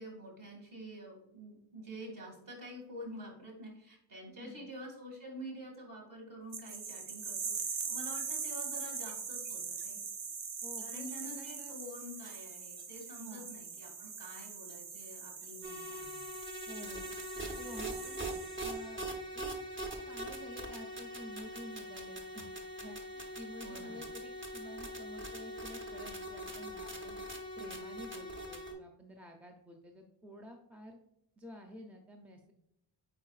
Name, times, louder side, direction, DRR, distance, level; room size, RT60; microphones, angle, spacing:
voice 1, 0.0-10.0 10.8-16.2 23.6-24.0, equal, 45° right, -1 dB, 2.3 m, -48 dB
voice 2, 4.3-4.7 10.6-11.7 13.2-13.5 16.7-17.2 17.6-18.2 18.6-19.0 19.3-19.5 20.1-22.5 22.8-27.2 27.6-31.0 31.4-32.5, equal, 5° right, 2 dB, 0.5 m, -50 dB
sound 1, 6.5-18.8, right 5 dB, 75° right, 1.0 m, -42 dB
sound 2, 15.6-28.7, right 1 dB, 25° right, 0.9 m, -42 dB
8.6 x 4.6 x 2.4 m, 0.77 s
wide cardioid pair, 170°, 44 cm